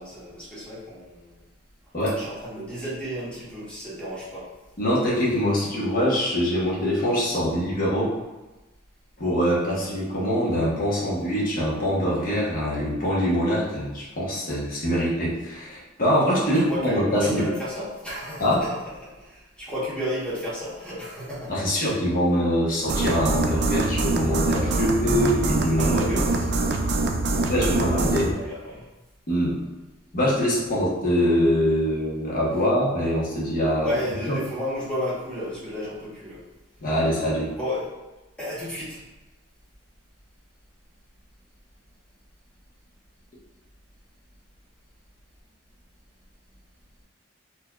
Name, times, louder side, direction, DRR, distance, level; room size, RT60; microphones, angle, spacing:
voice 1, 0.0-1.4 2.2-4.5 16.4-18.7 19.0-21.6 25.7-26.7 27.3-27.5 27.8-28.9 33.8-36.4 37.5-37.9 38.4-39.0, equal, 5° left, -9 dB, 1.2 m, -33 dB
voice 2, 4.8-8.1 9.2-17.4 18.4-18.6 21.5-26.3 27.5-28.3 29.3-29.6 30.1-33.9 34.3-34.4 36.8-37.5, equal, 45° left, -6 dB, 1.1 m, -24 dB
sound 1, 22.9-28.3, right 2 dB, 55° right, 0.4 m, -24 dB
4.1 x 2.8 x 2.4 m, 1.1 s
head